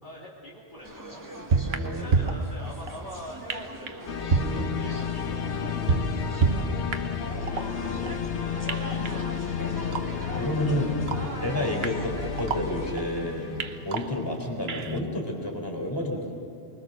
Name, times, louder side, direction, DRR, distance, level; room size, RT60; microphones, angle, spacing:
voice 1, 0.0-4.3 4.8-5.9 7.4-9.8 10.7-10.8 11.2-11.3, equal, 45° left, -5 dB, 3.1 m, -45 dB
sound 1, 0.8-12.9, right 1 dB, 15° right, 2.0 m, -42 dB
sound 2, 0.9-1.0 1.5-3.0 3.5-4.0 4.3-5.3 5.6-7.2 7.5-8.3 8.7-10.3 10.7-10.8 11.1-13.2 13.6-15.0, right 4 dB, 65° right, 1.3 m, -29 dB
voice 2, 1.6-2.2 4.5-4.8 10.4-10.9 11.4-13.5 13.8-16.3, left 1 dB, 20° left, 1 dB, 4.1 m, -30 dB
sound 3, 4.1-13.9, left 7 dB, 80° left, 1.4 m, -32 dB
25.0 x 22.5 x 6.6 m, 2.6 s
omnidirectional pair, 1.1 m